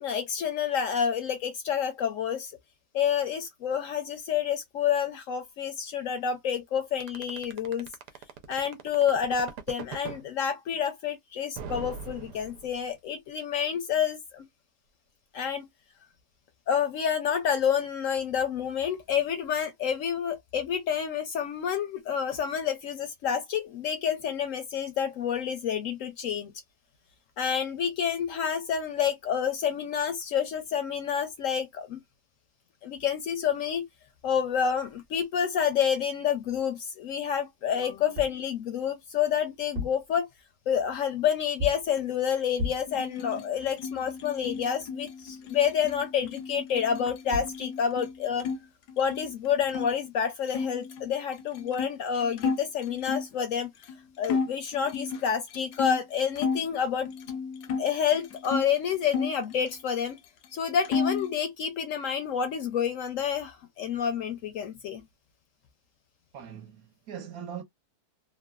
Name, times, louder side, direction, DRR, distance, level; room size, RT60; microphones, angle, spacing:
voice 1, 0.0-2.5 2.9-7.9 8.5-14.5 15.3-15.7 16.7-26.5 27.4-32.0 32.8-33.8 34.2-40.3 40.7-48.5 49.0-53.7 54.2-57.1 57.8-60.2 60.5-65.0, left 8 dB, 65° left, 0.8 m, -28 dB
sound 1, 7.0-10.2 11.6-13.0, right 6 dB, 85° right, 1.2 m, -40 dB
sound 2, 38.1-38.5 39.6-40.1 41.6-42.0 42.6-43.0 47.0-47.1 47.3-47.6, left 3 dB, 40° right, 1.0 m, -34 dB
sound 3, 42.9-48.6 48.9-49.9 50.5-53.4 53.8-54.0 54.2-56.7 57.0-58.7 59.1-60.2 60.4-61.3, left 5 dB, 80° left, 1.1 m, -33 dB
voice 2, 66.3-67.6, right 8 dB, 70° right, 1.1 m, -41 dB
3.1 x 2.2 x 2.2 m
omnidirectional pair, 1.7 m